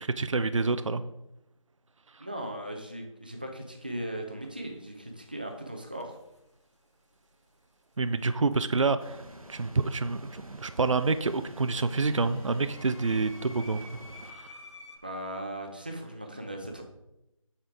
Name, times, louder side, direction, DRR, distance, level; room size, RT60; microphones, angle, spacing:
voice 1, 0.2-1.0 8.0-9.2 9.5-13.9 14.3-14.5, right 3 dB, 65° right, 12 dB, 0.5 m, -27 dB
voice 2, 2.2-6.2 15.0-16.8, right 1 dB, 15° right, 2 dB, 0.6 m, -38 dB
sound 1, 4.4-4.6 5.8-6.4 8.5-9.5 9.8-15.0, left 2 dB, 55° left, 1.4 m, -52 dB
sound 2, 9.0-14.3, right 1 dB, 90° right, 1.1 m, -48 dB
9.0 x 4.3 x 5.0 m, 0.88 s
figure-of-eight pair, 165°, 18 cm